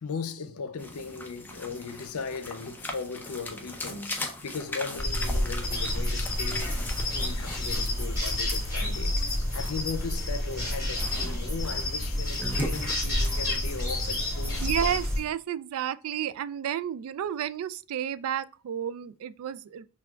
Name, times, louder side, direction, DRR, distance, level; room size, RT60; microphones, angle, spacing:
voice 1, 0.0-9.2 9.5-14.6, left 5 dB, 90° left, 0.5 m, -38 dB
sound 1, 0.8-15.3, left 1 dB, 10° left, 0.4 m, -40 dB
sound 2, 5.0-15.2, left 1 dB, 15° right, 1.9 m, -29 dB
voice 2, 14.6-19.8, right 10 dB, 80° right, 0.3 m, -31 dB
5.8 x 2.3 x 2.2 m
head